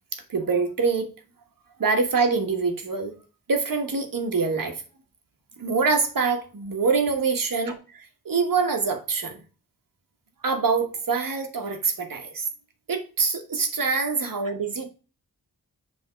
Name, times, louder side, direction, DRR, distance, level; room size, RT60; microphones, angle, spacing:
voice 1, 0.1-1.1 1.8-3.1 3.5-4.8 5.6-9.4 10.4-12.5 12.9-14.9, right 4 dB, 65° right, 1.4 m, -25 dB
6.9 x 3.6 x 5.0 m
wide cardioid pair, 90°, 36 cm